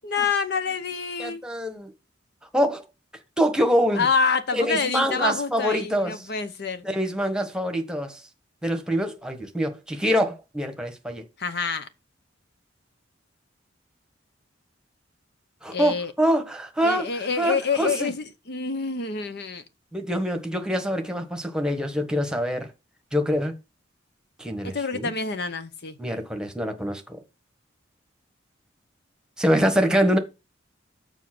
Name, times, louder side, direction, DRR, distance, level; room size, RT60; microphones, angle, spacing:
voice 1, 0.0-1.4 4.0-6.8 11.4-11.9 15.7-16.1 16.8-19.6 24.6-25.9, left 5 dB, 55° left, 0.8 m, -27 dB
voice 2, 1.2-1.9 2.5-2.8 3.4-4.0 4.5-6.1 6.8-8.2 8.6-11.2 15.6-18.1 19.9-22.7 23.1-23.5 24.4-25.1 26.0-27.2 29.4-30.2, equal, 5° right, 1.3 m, -25 dB
7.3 x 5.2 x 5.9 m
head